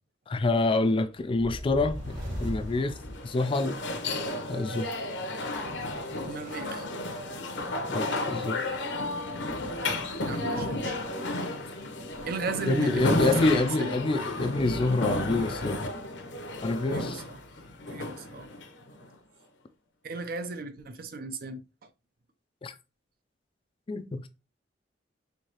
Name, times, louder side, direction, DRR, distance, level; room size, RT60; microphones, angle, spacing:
voice 1, 0.3-3.0 3.2-3.8 4.5-4.9 7.9-8.6 12.7-15.9 16.6-17.2 22.6-22.7 23.9-24.3, left 2 dB, 30° left, 0.3 m, -27 dB
sound 1, 1.3-4.0, equal, 75° right, 2.1 m, -37 dB
sound 2, 2.1-19.1, left 2 dB, 70° left, 0.7 m, -33 dB
voice 2, 6.2-6.9 10.2-11.1 12.2-14.0 16.9-17.4 17.9-18.5 20.0-21.6, right 3 dB, 55° right, 0.6 m, -36 dB
4.6 x 2.8 x 2.9 m
head